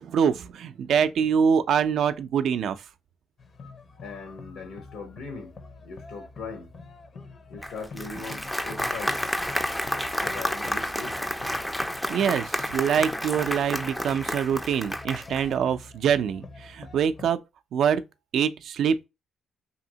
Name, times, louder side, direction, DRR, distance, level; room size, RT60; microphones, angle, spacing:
voice 1, 0.0-2.8 12.1-17.4 17.7-18.0 18.3-19.0, right 7 dB, 70° right, 0.3 m, -24 dB
sound 1, 3.4-17.3, left 3 dB, 45° left, 0.6 m, -45 dB
voice 2, 4.0-5.6 5.8-6.7 7.5-9.2 9.8-11.2, left 4 dB, 85° left, 1.0 m, -39 dB
Applause, 7.6-15.5, equal, 5° left, 0.3 m, -30 dB
2.8 x 2.7 x 2.7 m
cardioid pair, 90°, 0 cm